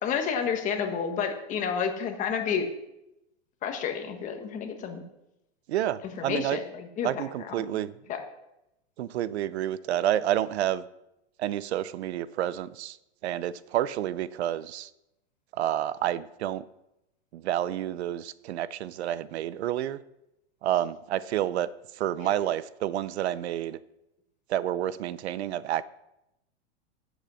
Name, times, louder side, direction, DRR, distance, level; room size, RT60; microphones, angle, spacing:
voice 1, 0.0-2.7 3.6-5.0 6.2-7.1 7.4-7.8 8.1-8.2 22.2-22.4, left 7 dB, 25° left, 5 dB, 1.3 m, -30 dB
voice 2, 5.7-6.6 7.0-7.9 9.0-10.8 11.4-13.0 13.2-14.9 15.5-16.6 17.3-20.0 20.6-21.7 22.0-23.8 24.5-25.9, right 12 dB, 75° right, 17 dB, 0.6 m, -29 dB
8.8 x 8.0 x 6.3 m, 0.88 s
supercardioid pair, 150°, 33 cm